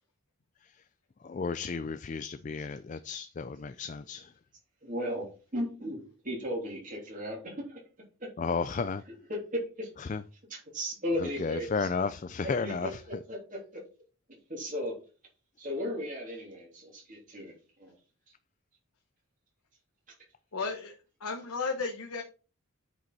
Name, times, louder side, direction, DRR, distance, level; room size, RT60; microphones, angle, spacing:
voice 1, 1.2-4.3 8.4-9.0 10.0-10.2 11.2-13.0, left 4 dB, 35° left, 0.3 m, -33 dB
voice 2, 4.8-6.0 6.2-7.8 9.5-9.9 10.5-11.9 12.6-13.8 14.5-15.0 15.6-17.9, equal, 35° right, 3.2 m, -36 dB
voice 3, 20.5-20.9 21.2-22.2, left 4 dB, 80° left, 1.1 m, -33 dB
9.2 x 5.3 x 4.1 m
head